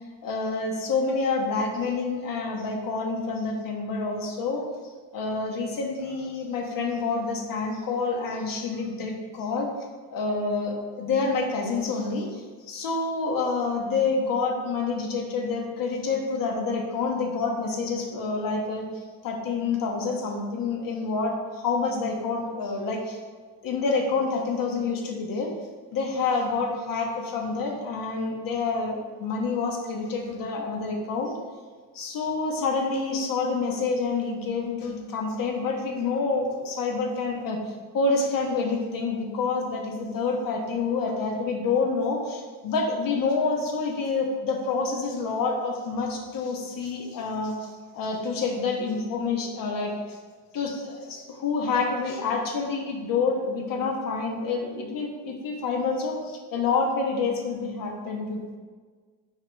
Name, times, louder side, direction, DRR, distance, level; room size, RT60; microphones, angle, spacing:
voice 1, 0.2-4.6 5.1-9.7 10.1-18.9 19.2-23.2 23.6-25.5 25.9-31.3 31.9-47.7 47.9-50.2 50.5-58.6, left 4 dB, 60° left, 1 dB, 1.2 m, -28 dB
5.6 x 4.8 x 4.5 m, 1.5 s
cardioid pair, 125°, 37 cm